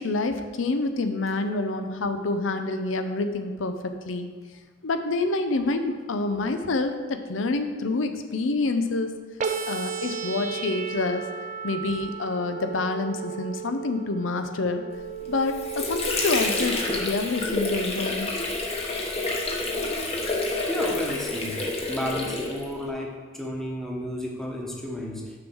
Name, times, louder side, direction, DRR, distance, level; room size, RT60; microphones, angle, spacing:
voice 1, 0.0-4.3 4.8-9.1 9.7-11.2 11.6-14.8 15.3-18.3, left 3 dB, 85° left, 7 dB, 0.6 m, -27 dB
sound 1, 9.4-17.4, right 7 dB, 40° right, 0.5 m, -35 dB
Water / Sink (filling or washing), 15.2-22.9, left 2 dB, 30° left, 1.2 m, -29 dB
voice 2, 20.7-21.6 21.9-25.3, left 1 dB, ahead, -1 dB, 1.1 m, -32 dB
6.6 x 5.4 x 6.1 m, 1.4 s
head